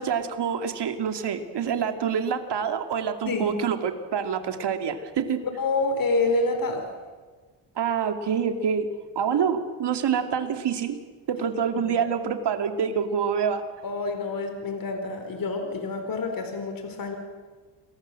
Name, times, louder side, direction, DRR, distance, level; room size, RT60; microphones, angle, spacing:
voice 1, 0.0-5.4 7.8-8.9 9.2-11.0 11.3-13.6, right 7 dB, 60° right, 7 dB, 2.7 m, -26 dB
voice 2, 5.6-6.9 11.7-12.1 13.8-17.2, left 3 dB, 45° left, 5 dB, 4.6 m, -27 dB
29.5 x 21.5 x 7.7 m, 1.4 s
cardioid pair, 115°, 46 cm